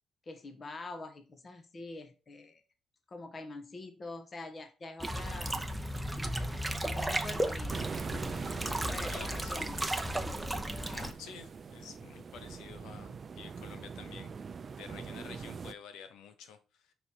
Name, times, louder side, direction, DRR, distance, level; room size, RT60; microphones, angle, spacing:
voice 1, 0.3-2.6 3.1-5.6 6.8-7.8 8.9-9.9, left 2 dB, 35° left, 7 dB, 1.2 m, -45 dB
sound 1, 5.0-11.1, right 1 dB, 10° right, 0.7 m, -34 dB
sound 2, 7.7-15.7, right 5 dB, 45° right, 0.4 m, -43 dB
voice 2, 9.1-9.5 10.9-14.3 14.7-16.9, left 7 dB, 85° left, 9 dB, 1.0 m, -50 dB
5.4 x 4.1 x 4.6 m, 0.33 s
cardioid pair, 90°, 0 cm